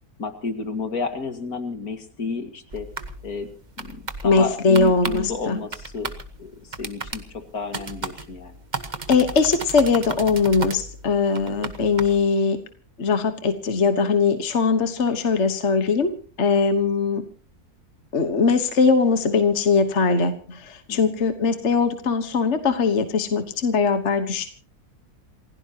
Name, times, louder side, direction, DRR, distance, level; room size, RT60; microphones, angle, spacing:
voice 1, 0.2-2.9 3.2-3.5 3.8-6.1 6.4-8.5 20.9-21.2, left 4 dB, 65° left, 7 dB, 2.5 m, -31 dB
sound 1, 2.7-12.2, right 3 dB, 30° right, 1.3 m, -35 dB
voice 2, 4.2-5.6 9.1-12.6 13.0-16.1 16.4-17.2 18.1-24.5, left 4 dB, 50° left, 8 dB, 1.5 m, -21 dB
28.5 x 16.0 x 2.9 m, 0.38 s
omnidirectional pair, 1.6 m